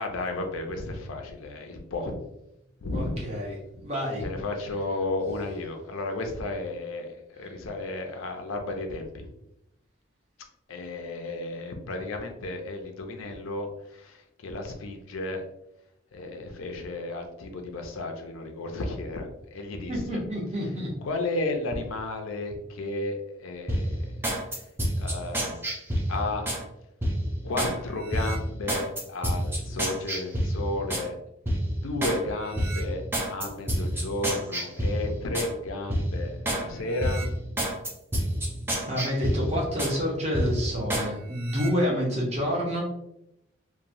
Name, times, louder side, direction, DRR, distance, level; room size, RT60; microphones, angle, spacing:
voice 1, 0.0-2.1 2.8-3.2 4.2-9.3 10.7-15.4 16.1-20.2 21.0-24.1 25.0-25.5 26.1-26.5 27.4-31.2 31.8-37.3, left 2 dB, 85° left, 4 dB, 0.5 m, -33 dB
voice 2, 2.9-3.5 3.8-4.2 19.9-20.9 38.9-42.8, equal, 30° right, -3 dB, 0.8 m, -28 dB
sound 1, 23.7-26.6 27.0-27.7 28.1-31.1 31.5-32.2 32.5-35.5 35.9-36.6 37.0-40.0 40.3-41.1 41.4-41.7, equal, 10° right, 0.4 m, -29 dB
3.0 x 2.2 x 2.6 m, 0.83 s
head